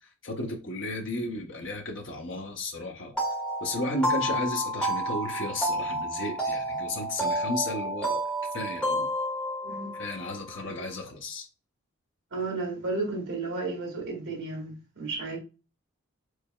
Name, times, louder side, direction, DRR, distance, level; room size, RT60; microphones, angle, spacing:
voice 1, 0.0-3.1 3.6-9.1 9.9-11.5, left 2 dB, 60° left, 0.9 m, -34 dB
sound 1, 3.1-10.6, right 1 dB, 5° left, 1.6 m, -30 dB
voice 2, 9.6-9.9 12.3-15.4, right 3 dB, 70° right, 2.2 m, -33 dB
4.7 x 4.1 x 2.3 m
head